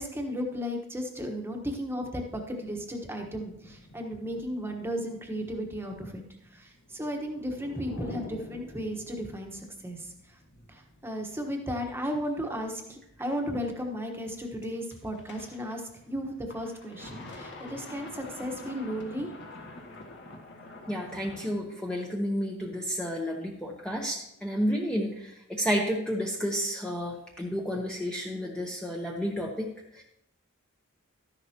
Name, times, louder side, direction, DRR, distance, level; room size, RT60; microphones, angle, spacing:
voice 1, 0.0-6.2 6.5-10.1 10.7-19.3, equal, 10° right, 2 dB, 1.2 m, -35 dB
sound 1, 2.5-21.6, left 2 dB, 55° left, 1.7 m, -49 dB
sound 2, 6.9-9.6, equal, 75° left, 1.7 m, -44 dB
voice 2, 20.9-30.0, equal, 5° left, -2 dB, 0.9 m, -31 dB
13.0 x 11.0 x 2.9 m, 0.78 s
head